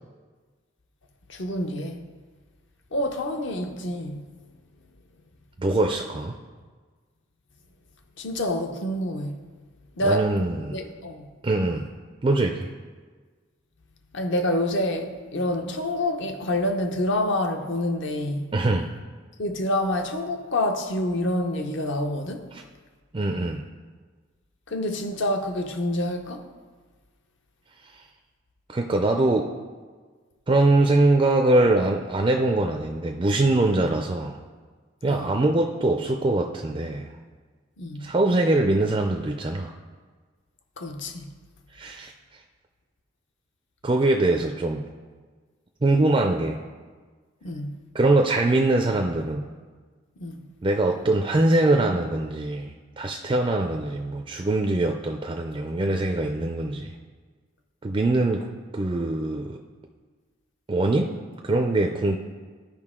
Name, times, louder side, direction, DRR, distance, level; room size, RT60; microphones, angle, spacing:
voice 1, 1.3-2.1 2.9-4.3 8.2-9.4 10.0-10.3 10.7-11.3 14.1-18.5 19.4-22.5 24.7-26.4 35.1-35.3 37.8-38.1 40.8-41.3 47.4-47.8 50.2-50.4, left 1 dB, 60° left, 0.7 m, -27 dB
voice 2, 5.6-6.3 10.0-10.8 11.4-11.9 12.2-12.7 18.5-18.9 22.5-22.6 23.1-23.6 28.7-29.5 30.5-34.4 35.0-37.1 38.0-39.7 41.7-42.1 43.8-44.8 45.8-46.6 47.9-49.5 50.6-56.9 57.8-58.5 58.7-59.6 60.7-61.1 61.4-62.2, right 2 dB, 25° right, 0.4 m, -23 dB
13.0 x 5.1 x 3.7 m
head